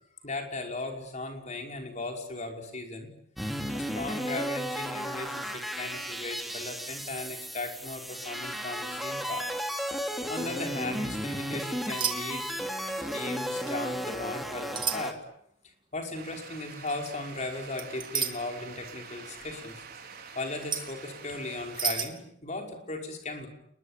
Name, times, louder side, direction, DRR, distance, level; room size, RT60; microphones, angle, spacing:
voice 1, 0.2-3.1 3.7-9.5 10.3-12.8 13.1-15.2 15.9-19.8 20.4-23.5, left 2 dB, 40° left, 3 dB, 5.4 m, -37 dB
sound 1, 3.4-15.1, equal, ahead, 2.8 m, -34 dB
sound 2, 12.0-12.2 12.5-12.8 13.7-13.8 14.8-15.0 16.9-17.1 17.8-18.3 20.5-20.9 21.7-22.1, right 7 dB, 25° right, 2.9 m, -30 dB
sound 3, 16.1-22.1, right 5 dB, 50° right, 5.0 m, -46 dB
29.5 x 22.0 x 9.0 m, 0.73 s
head